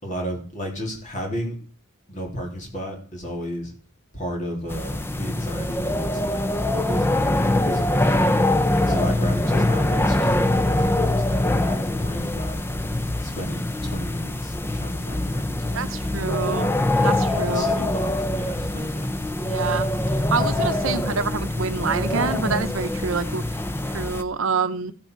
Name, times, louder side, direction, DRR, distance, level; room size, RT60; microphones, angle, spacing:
voice 1, 0.0-1.6 2.1-3.7 4.1-6.5 6.7-8.4 8.9-12.6 13.2-16.1 17.0-19.1 19.5-19.7, equal, 35° left, 1 dB, 3.0 m, -33 dB
sound 1, 4.7-24.2, left 1 dB, 10° left, 0.5 m, -23 dB
voice 2, 15.7-16.7 17.0-17.7 19.4-19.9 20.3-23.6 23.9-24.9, right 5 dB, 70° right, 11 dB, 0.7 m, -27 dB
14.5 x 7.0 x 4.5 m, 0.40 s
head